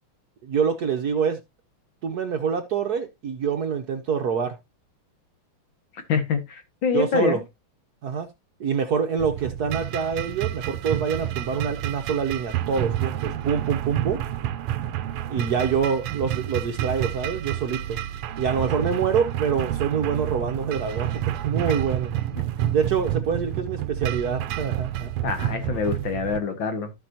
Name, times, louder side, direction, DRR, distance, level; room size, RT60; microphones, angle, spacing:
voice 1, 0.4-1.4 2.0-4.6 6.9-7.4 8.0-8.3 8.6-14.2 15.3-18.0 18.4-21.1 21.4-22.1 22.7-25.1, right 6 dB, 60° right, 1.1 m, -26 dB
voice 2, 6.1-7.4 25.2-26.9, left 5 dB, 60° left, 2.2 m, -25 dB
sound 1, 9.2-26.4, right 12 dB, 90° right, 1.6 m, -29 dB
14.5 x 5.3 x 2.8 m
omnidirectional pair, 2.4 m